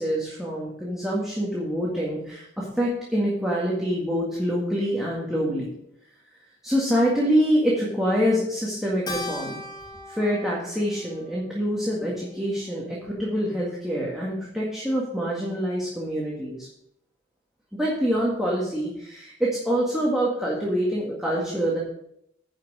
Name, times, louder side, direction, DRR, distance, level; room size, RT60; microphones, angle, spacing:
voice 1, 0.0-5.7 6.6-9.6 10.1-16.7 17.7-21.8, equal, ahead, -6 dB, 1.8 m, -26 dB
Keyboard (musical), 9.1-13.7, left 1 dB, 20° left, 1.1 m, -40 dB
9.6 x 5.9 x 6.1 m, 0.77 s
head